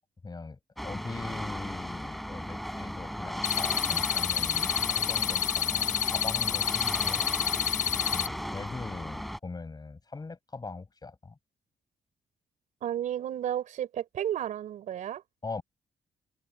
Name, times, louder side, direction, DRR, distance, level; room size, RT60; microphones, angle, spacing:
voice 1, 0.2-7.3 8.0-11.4 15.4-15.6, left 3 dB, 30° left, 7.6 m, -41 dB
sound 1, 0.8-9.4, equal, ahead, 5.2 m, -36 dB
sound 2, 3.4-8.3, left 10 dB, 75° left, 1.2 m, -29 dB
voice 2, 12.8-15.2, right 11 dB, 80° right, 4.3 m, -32 dB
cardioid pair, 75°, 13 cm